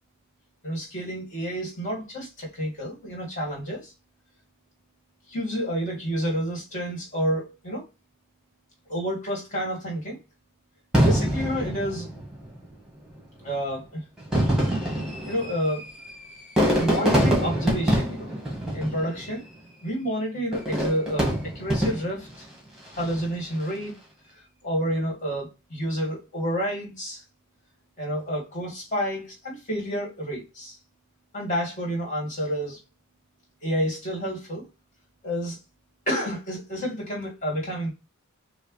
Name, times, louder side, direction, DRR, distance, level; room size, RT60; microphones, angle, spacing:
voice 1, 0.6-3.9 5.3-7.8 8.9-10.2 11.0-12.1 13.4-14.0 15.2-15.9 16.8-18.3 18.7-19.4 19.8-22.5 22.9-24.0 24.3-27.2 28.0-30.8 31.3-32.8 33.6-34.6 35.2-35.6 36.1-37.9, equal, 35° left, 2.3 m, -29 dB
Fireworks, 10.9-12.6 13.4-13.5 14.2-19.5 20.5-22.3 22.9-23.3, equal, 5° right, 1.7 m, -25 dB
6.4 x 2.3 x 3.3 m
head